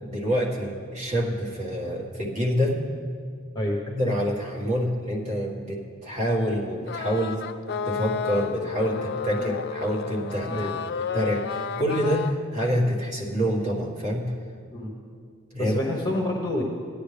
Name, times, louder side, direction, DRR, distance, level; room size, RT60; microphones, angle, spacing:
voice 1, 0.0-2.8 3.9-7.4 7.9-10.7 11.1-14.2 15.5-15.8, equal, 35° right, -4 dB, 1.8 m, -27 dB
sound 1, 6.9-12.3, left 6 dB, 50° left, 0.3 m, -31 dB
voice 2, 10.5-10.8 14.7-15.0 15.6-16.6, left 1 dB, 20° left, -1 dB, 1.1 m, -28 dB
17.5 x 10.0 x 3.4 m, 2.2 s
head